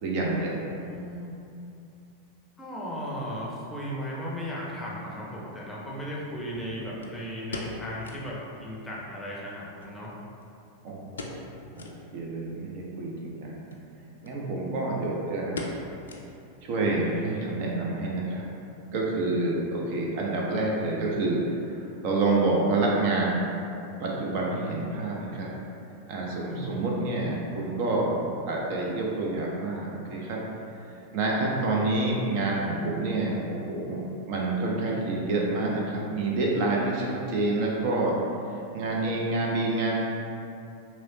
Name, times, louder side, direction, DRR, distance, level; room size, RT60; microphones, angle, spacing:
voice 1, 0.0-0.6 10.8-11.1 11.7-13.6 14.2-15.7 16.6-18.4 18.9-23.4 24.0-25.5 26.1-28.2 28.5-30.4 31.1-38.1 38.7-40.0, right 2 dB, 45° right, -3 dB, 0.5 m, -28 dB
voice 2, 0.7-1.3 2.6-10.1 26.5-26.8, equal, 10° left, -5 dB, 0.6 m, -36 dB
sound 1, 4.9-5.0 7.0-8.4 8.7-8.8 9.1-9.2 9.8-10.7 11.1-11.5 11.7-12.0 12.5-12.6 13.6-13.9 14.2-14.4 14.7-15.0 15.6-16.6 16.9-17.0 17.6-17.9 18.2-18.3, left 2 dB, 70° left, 0.3 m, -39 dB
3.1 x 2.8 x 2.7 m, 2.7 s
figure-of-eight pair, 90°, 0 cm